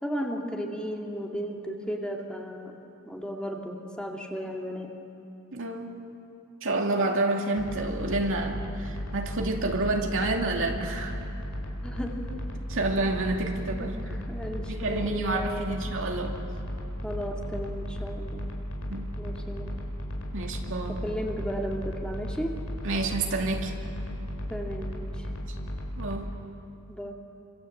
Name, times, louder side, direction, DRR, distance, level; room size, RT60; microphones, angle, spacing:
voice 1, 0.0-2.8 3.1-4.9 11.8-12.2 13.8-15.8 17.0-18.6 19.2-19.7 20.9-22.6 24.5-25.3 26.9-27.1, equal, 5° left, 0 dB, 2.4 m, -35 dB
voice 2, 5.5-6.0 6.6-11.2 12.7-14.2 14.7-16.4 18.9-19.1 20.3-21.0 22.8-23.7 26.0-26.3, right 2 dB, 65° right, 2 dB, 2.7 m, -29 dB
sound 1, 7.6-26.2, equal, 85° left, 4.9 m, -35 dB
28.0 x 26.0 x 8.0 m, 2.6 s
head